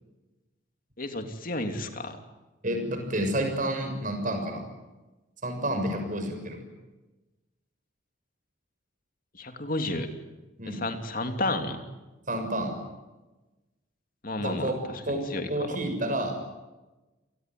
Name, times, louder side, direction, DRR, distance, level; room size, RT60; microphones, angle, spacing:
voice 1, 1.0-2.2 9.3-10.1 10.6-11.8 14.2-14.7 15.1-15.5, left 2 dB, 45° left, 6 dB, 3.0 m, -31 dB
voice 2, 2.6-4.7 5.4-6.6 10.6-10.8 12.3-12.7 14.4-14.8 15.0-15.2 15.5-16.3, right 1 dB, 40° right, 5 dB, 6.5 m, -29 dB
29.0 x 19.5 x 9.5 m, 1.1 s
head